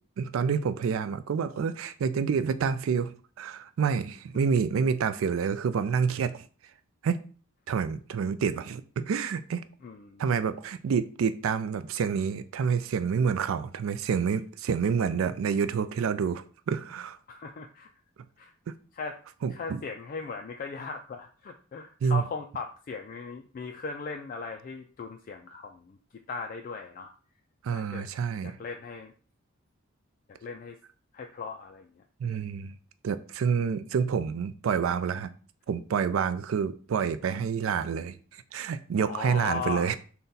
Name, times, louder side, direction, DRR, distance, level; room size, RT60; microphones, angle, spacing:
voice 1, 0.2-3.1 3.4-6.4 7.0-7.2 7.7-9.6 10.2-17.2 19.4-19.8 22.0-22.2 27.6-28.6 32.2-32.7 33.0-35.3 35.7-38.1 38.5-40.0, right 6 dB, 70° right, 13 dB, 0.3 m, -28 dB
voice 2, 9.8-10.2 17.3-17.9 18.4-18.5 18.9-19.2 19.5-26.0 26.3-27.1 27.7-28.1 28.4-29.1 30.4-30.8 31.1-32.0 39.0-39.9, left 5 dB, 40° left, 4 dB, 0.3 m, -38 dB
3.8 x 2.2 x 3.9 m, 0.40 s
head